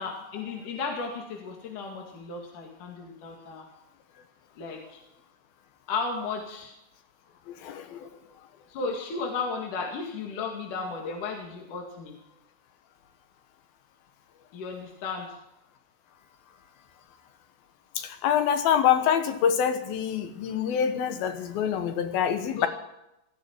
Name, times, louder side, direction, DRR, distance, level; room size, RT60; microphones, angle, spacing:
voice 1, 0.0-3.7 4.6-5.0 5.9-6.7 8.7-12.1 14.5-15.4 22.6-22.7, left 4 dB, 65° left, 3.5 m, -34 dB
voice 2, 7.5-8.1 18.0-22.7, left 8 dB, 90° left, 3.1 m, -26 dB
18.0 x 14.5 x 4.6 m
omnidirectional pair, 4.1 m